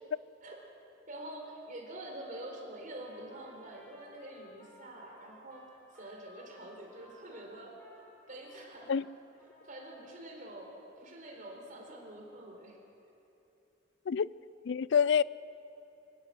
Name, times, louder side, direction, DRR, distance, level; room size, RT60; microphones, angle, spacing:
voice 1, 1.1-5.6 5.9-8.9 9.6-12.8, right 1 dB, 45° right, 4.3 m, -46 dB
Trumpet, 2.9-9.1 9.4-10.1, left 1 dB, 10° left, 5.7 m, -59 dB
voice 2, 14.7-15.2, left 7 dB, 65° left, 0.4 m, -26 dB
24.5 x 17.0 x 7.8 m
head